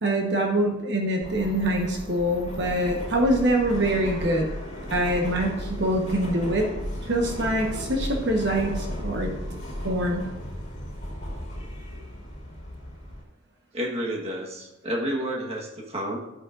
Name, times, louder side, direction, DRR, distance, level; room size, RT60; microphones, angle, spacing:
voice 1, 0.0-4.5 4.9-6.7 7.0-9.3 9.8-10.2, right 1 dB, 65° right, 1 dB, 1.2 m, -24 dB
Subway metro underground, 1.2-13.2, equal, 45° left, 3.7 m, -35 dB
voice 2, 13.7-16.2, equal, 35° right, -1 dB, 1.4 m, -30 dB
13.5 x 8.5 x 2.6 m, 0.97 s
head